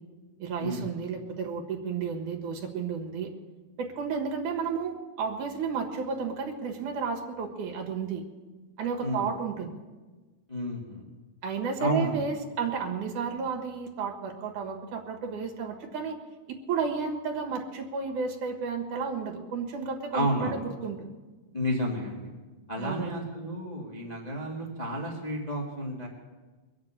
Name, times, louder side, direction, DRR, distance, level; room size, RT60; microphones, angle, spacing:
voice 1, 0.4-3.3 3.8-8.2 8.8-9.8 11.4-16.2 16.5-21.1 22.8-23.1, right 5 dB, 70° right, 3 dB, 3.0 m, -32 dB
voice 2, 10.5-11.0 11.8-12.1 20.1-20.6 21.5-22.3 22.7-26.1, equal, 15° left, -2 dB, 1.5 m, -31 dB
21.5 x 7.7 x 8.8 m, 1.3 s
omnidirectional pair, 3.7 m